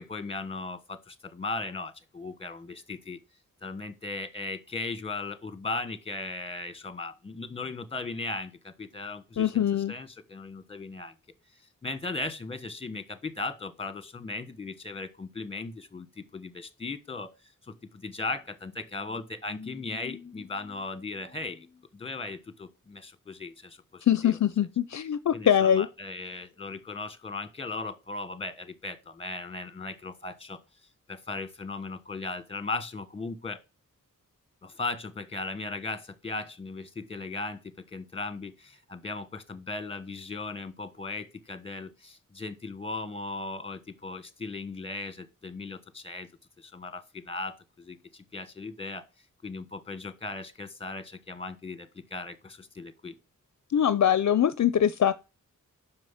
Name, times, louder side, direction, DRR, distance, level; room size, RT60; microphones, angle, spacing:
voice 1, 0.0-3.2 3.6-9.6 9.9-11.1 11.8-17.3 17.6-24.4 25.3-30.6 31.1-33.6 34.6-46.3 46.6-49.1 49.4-53.1, left 3 dB, 20° left, 1.3 m, -37 dB
voice 2, 9.4-9.9 24.1-25.9 53.7-55.1, left 9 dB, 60° left, 0.5 m, -23 dB
7.6 x 6.0 x 7.3 m
wide cardioid pair, 125°, 32 cm